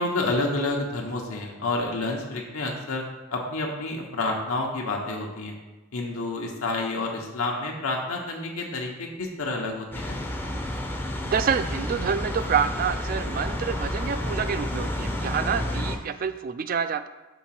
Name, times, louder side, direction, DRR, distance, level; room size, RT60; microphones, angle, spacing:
voice 1, 0.0-3.0 3.3-5.5 5.9-10.2, left 2 dB, 85° left, 0 dB, 1.0 m, -29 dB
sound 1, 9.9-16.0, left 1 dB, 10° left, 0.5 m, -30 dB
voice 2, 11.2-17.1, right 7 dB, 40° right, 11 dB, 0.3 m, -27 dB
5.9 x 3.7 x 5.9 m, 1.1 s
head